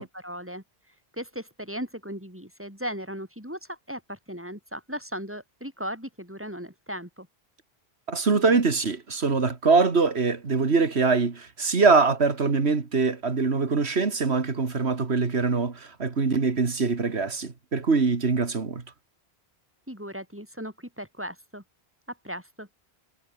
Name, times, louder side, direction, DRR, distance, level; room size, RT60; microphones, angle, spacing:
voice 1, 0.2-7.3 19.9-21.6 22.1-22.7, equal, 10° right, 6.5 m, -37 dB
voice 2, 8.1-18.8, right 4 dB, 90° right, 2.3 m, -23 dB
omnidirectional pair, 1.1 m